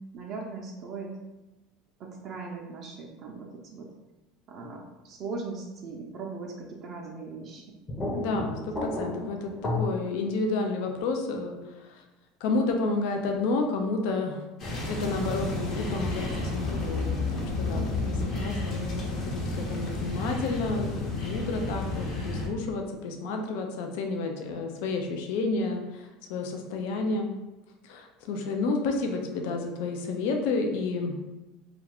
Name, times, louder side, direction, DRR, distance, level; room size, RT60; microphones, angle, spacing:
voice 1, 0.1-1.1 2.0-3.9 4.5-7.8 8.3-9.1 17.7-18.3, right 4 dB, 50° right, 0 dB, 0.5 m, -39 dB
sound 1, 7.9-9.9, left 2 dB, 15° left, 0.7 m, -32 dB
voice 2, 8.1-12.0 12.4-14.4 14.9-17.8 18.3-27.3 27.8-31.2, left 3 dB, 70° left, 3 dB, 0.4 m, -30 dB
sound 2, 14.6-22.5, left 2 dB, 45° left, 0.8 m, -31 dB
2.3 x 2.3 x 3.4 m, 1.0 s
hypercardioid pair, 95°, 0 cm